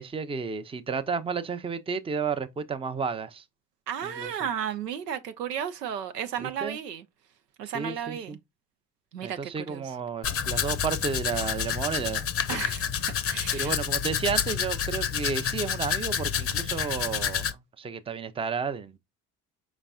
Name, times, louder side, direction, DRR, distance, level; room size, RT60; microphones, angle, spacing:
voice 1, 0.0-3.4 4.0-4.4 6.4-6.8 7.7-8.4 9.2-12.6 13.5-19.0, right 5 dB, 10° right, 0.5 m, -32 dB
voice 2, 3.9-7.0 7.6-8.4 9.1-9.8 12.5-13.7, right 9 dB, 85° right, 0.6 m, -34 dB
Domestic sounds home sounds, 10.2-17.5, left 8 dB, 30° left, 0.6 m, -29 dB
5.2 x 4.0 x 2.3 m
figure-of-eight pair, 50°, 47 cm